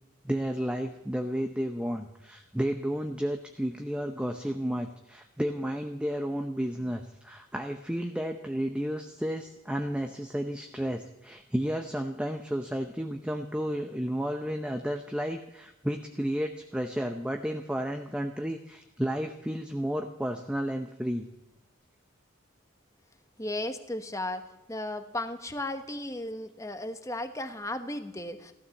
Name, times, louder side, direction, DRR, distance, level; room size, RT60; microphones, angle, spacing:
voice 1, 0.2-21.3, equal, 5° right, 5 dB, 0.7 m, -32 dB
voice 2, 23.4-24.4 24.7-28.5, left 1 dB, 15° left, 9 dB, 1.1 m, -35 dB
15.5 x 13.0 x 7.2 m, 0.96 s
head